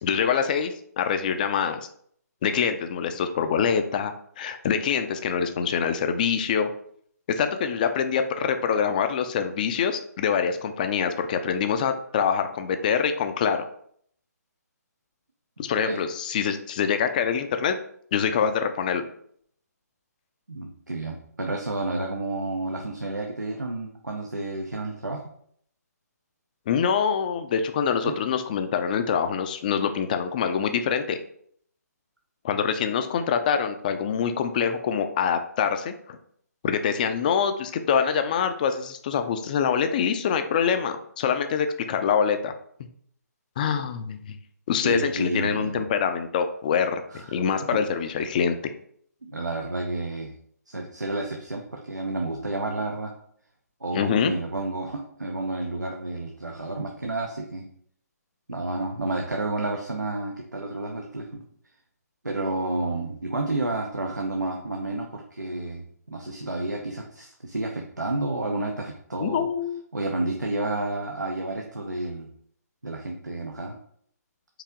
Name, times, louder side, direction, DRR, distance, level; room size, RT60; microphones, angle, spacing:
voice 1, 0.0-1.8 2.4-6.7 7.3-13.6 15.6-17.8 18.1-19.0 26.7-31.2 32.4-36.2 36.6-42.5 43.6-44.4 44.7-48.6 53.9-54.4 69.2-69.8, left 7 dB, 30° left, 8 dB, 0.4 m, -25 dB
voice 2, 20.5-25.3 28.1-28.2 44.8-45.8 47.1-47.4 47.7-47.8 49.2-50.3 50.7-53.1 53.8-57.7 58.5-61.4 62.2-69.5 69.9-72.3 72.8-73.8, right 2 dB, 90° right, 1 dB, 0.6 m, -30 dB
4.7 x 2.7 x 3.6 m, 0.65 s
figure-of-eight pair, 140°, 9 cm